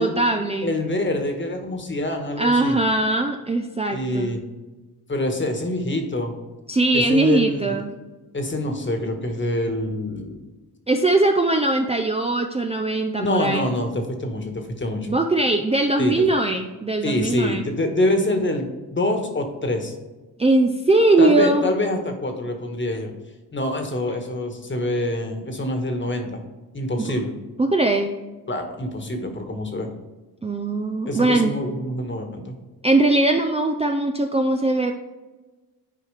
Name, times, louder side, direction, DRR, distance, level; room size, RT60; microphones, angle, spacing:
voice 1, 0.0-0.7 2.4-4.3 6.7-7.9 10.9-13.7 15.1-17.6 20.4-21.7 27.0-27.1 27.6-28.1 30.4-31.5 32.8-34.9, right 2 dB, 15° right, 4 dB, 0.5 m, -20 dB
voice 2, 0.6-2.8 3.9-4.4 5.1-6.3 6.9-7.8 8.3-10.4 13.2-15.2 16.0-16.2 17.0-20.0 21.2-23.1 23.5-26.4 26.7-27.4 28.5-29.9 31.1-32.5, left 1 dB, 30° left, 5 dB, 1.5 m, -25 dB
9.7 x 4.6 x 3.3 m, 1.2 s
cardioid pair, 75°, 38 cm